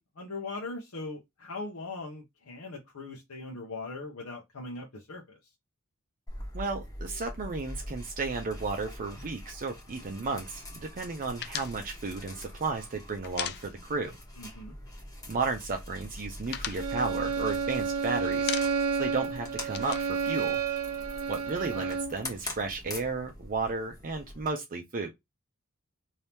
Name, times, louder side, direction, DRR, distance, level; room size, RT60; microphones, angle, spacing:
voice 1, 0.0-5.4 14.4-14.7 21.7-21.9, left 3 dB, 70° left, 0.8 m, -40 dB
sound 1, 6.3-24.5, left 1 dB, 15° left, 1.1 m, -44 dB
voice 2, 6.5-14.2 15.3-18.6 19.0-20.6 21.3-25.1, right 3 dB, 40° right, 0.5 m, -33 dB
sound 2, 11.4-14.2 14.5-14.6 14.9-15.6 16.0-17.9 18.3-19.0 19.3-21.1, left 10 dB, 50° left, 0.4 m, -39 dB
Bowed string instrument, 16.8-22.2, right 5 dB, 80° right, 0.8 m, -30 dB
2.8 x 2.7 x 3.4 m
head